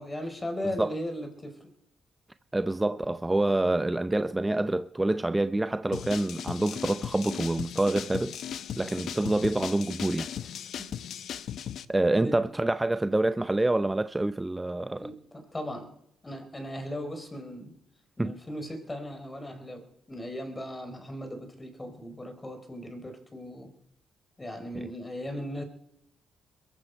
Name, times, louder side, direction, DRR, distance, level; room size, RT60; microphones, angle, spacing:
voice 1, 0.0-1.7 10.8-11.0 12.2-12.5 15.0-16.0 16.2-17.8 18.2-23.7 24.4-25.6, equal, 20° left, 4.0 m, -38 dB
voice 2, 2.5-8.4 8.8-10.5 11.9-15.1 18.2-18.3, right 2 dB, 15° right, 0.6 m, -27 dB
sound 1, 5.9-11.9, left 9 dB, 70° left, 0.8 m, -37 dB
22.0 x 13.5 x 4.6 m
cardioid pair, 90°, 0 cm